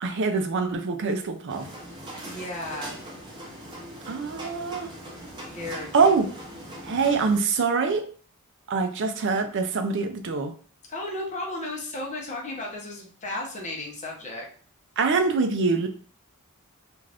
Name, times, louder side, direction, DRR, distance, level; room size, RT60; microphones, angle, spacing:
voice 1, 0.0-1.7 4.1-4.9 5.9-6.3 6.8-8.0 8.7-10.5 15.0-15.9, right 4 dB, 55° right, 6 dB, 0.5 m, -24 dB
sound 1, 1.5-7.4, right 1 dB, 20° right, 0.8 m, -41 dB
voice 2, 2.2-3.0 5.4-6.1 10.9-14.5, left 2 dB, 35° left, -2 dB, 0.8 m, -34 dB
2.5 x 2.4 x 3.3 m, 0.43 s
head